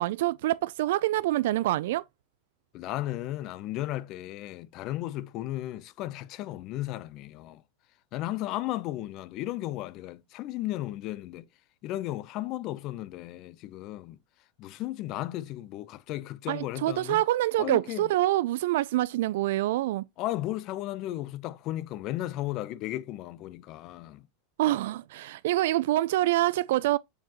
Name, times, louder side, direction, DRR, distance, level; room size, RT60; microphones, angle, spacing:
voice 1, 0.0-2.0 16.5-20.1 24.6-27.0, right 16 dB, 70° right, 0.3 m, -26 dB
voice 2, 2.7-7.6 8.1-11.5 11.8-14.2 14.6-17.2 17.6-18.1 20.2-24.2, left 15 dB, 50° left, 0.7 m, -35 dB
7.2 x 5.1 x 3.0 m
hypercardioid pair, 100°, 0 cm